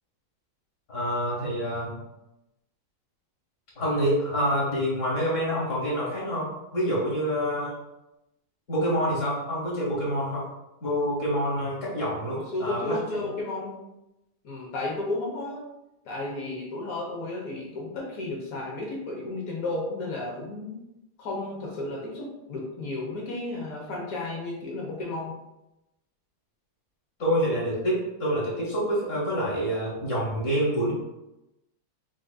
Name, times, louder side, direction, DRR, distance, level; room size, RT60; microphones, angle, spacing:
voice 1, 0.9-2.0 3.8-7.8 8.7-10.5 10.8-13.3 27.2-30.9, equal, 45° left, -5 dB, 1.1 m, -27 dB
voice 2, 12.3-13.8 14.4-15.7 16.0-20.8 21.2-25.4, left 2 dB, 70° left, -2 dB, 0.8 m, -33 dB
4.9 x 2.6 x 2.2 m, 0.92 s
omnidirectional pair, 2.3 m